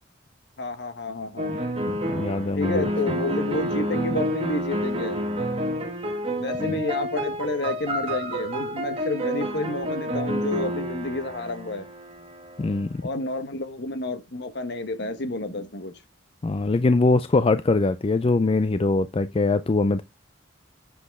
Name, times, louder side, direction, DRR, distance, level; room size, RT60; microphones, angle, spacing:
voice 1, 0.6-1.6 2.5-5.2 6.4-11.8 13.0-15.9, left 2 dB, 60° left, 1.2 m, -30 dB
sound 1, 1.4-12.9, equal, 30° right, 1.5 m, -29 dB
voice 2, 1.9-2.9 6.6-6.8 12.6-13.0 16.4-20.0, left 3 dB, 30° left, 0.4 m, -22 dB
7.6 x 6.1 x 3.5 m
head